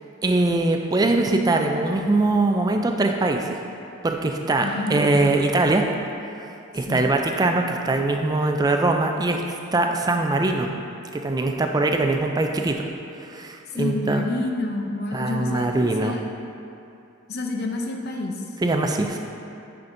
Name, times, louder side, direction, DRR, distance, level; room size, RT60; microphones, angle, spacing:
voice 1, 0.2-3.6 4.0-5.9 6.7-9.4 9.7-10.7 11.1-12.9 13.2-14.3 15.1-16.2 18.6-19.2, right 2 dB, 20° right, 3 dB, 0.3 m, -22 dB
voice 2, 4.6-5.2 6.9-7.1 13.8-16.2 17.3-18.4, left 2 dB, 45° left, 2 dB, 0.6 m, -28 dB
9.1 x 5.8 x 2.6 m, 2.7 s
head